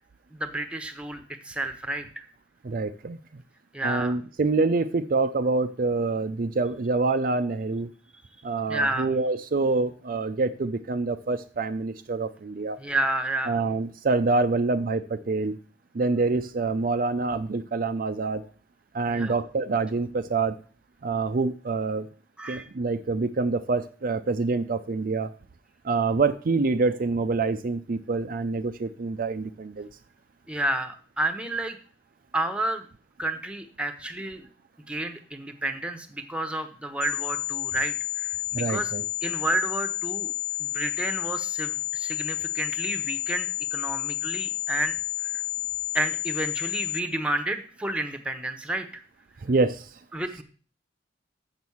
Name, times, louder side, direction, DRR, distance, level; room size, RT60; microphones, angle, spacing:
voice 1, 0.3-2.2 3.7-4.2 8.7-9.2 12.8-13.6 19.1-19.4 22.4-22.7 30.5-31.8 32.3-32.9 33.2-34.4 34.9-38.9 39.2-40.3 40.6-45.0 45.2-45.4 45.9-49.0 50.1-50.4, right 1 dB, 5° right, 8 dB, 0.9 m, -30 dB
voice 2, 2.6-3.2 3.8-7.9 8.4-12.8 13.5-15.5 15.9-18.4 18.9-20.6 21.0-22.1 22.5-25.3 25.8-29.9 38.5-39.0 49.4-50.0, right 3 dB, 50° right, 9 dB, 0.5 m, -26 dB
sound 1, 37.0-47.0, left 15 dB, 50° left, 1.1 m, -30 dB
7.4 x 6.2 x 7.0 m, 0.41 s
head